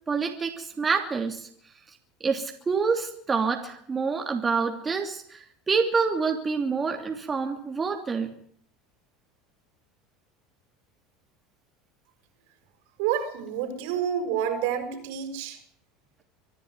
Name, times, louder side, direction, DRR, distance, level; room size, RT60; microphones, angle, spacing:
voice 1, 0.1-1.5 2.2-8.3, right 5 dB, 20° right, 3 dB, 3.0 m, -27 dB
voice 2, 13.0-15.6, right 9 dB, 75° right, 7 dB, 6.2 m, -28 dB
25.0 x 10.5 x 9.8 m, 0.64 s
supercardioid pair, 105°, 0 cm